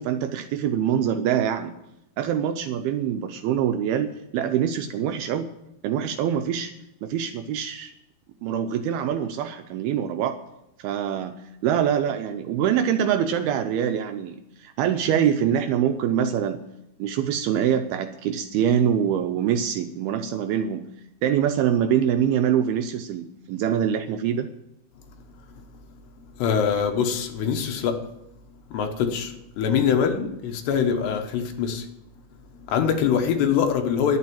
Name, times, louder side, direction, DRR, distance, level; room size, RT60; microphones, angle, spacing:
voice 1, 0.0-1.7 2.2-5.5 5.8-6.7 7.0-7.9 8.4-10.4 10.8-11.4 11.6-16.6 17.0-20.9 21.2-24.5, right 9 dB, 80° right, 7 dB, 2.4 m, -24 dB
voice 2, 26.4-28.0 28.7-31.9 32.6-34.2, left 7 dB, 80° left, 5 dB, 3.3 m, -23 dB
11.5 x 9.0 x 8.6 m, 0.85 s
omnidirectional pair, 4.9 m